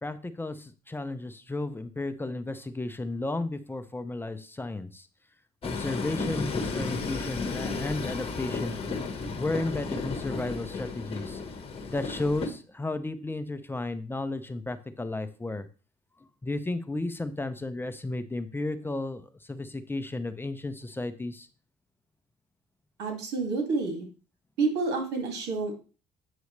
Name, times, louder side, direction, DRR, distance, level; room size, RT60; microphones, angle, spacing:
voice 1, 0.0-5.1 5.6-8.8 9.4-11.4 11.9-15.7 16.4-21.5, left 2 dB, 10° left, 9 dB, 0.6 m, -33 dB
Train, 5.6-12.5, left 4 dB, 35° left, 1.3 m, -33 dB
voice 2, 23.0-24.1 24.6-25.7, right 4 dB, 85° right, 3 dB, 2.3 m, -29 dB
8.2 x 6.2 x 3.2 m, 0.35 s
cardioid pair, 110°, 17 cm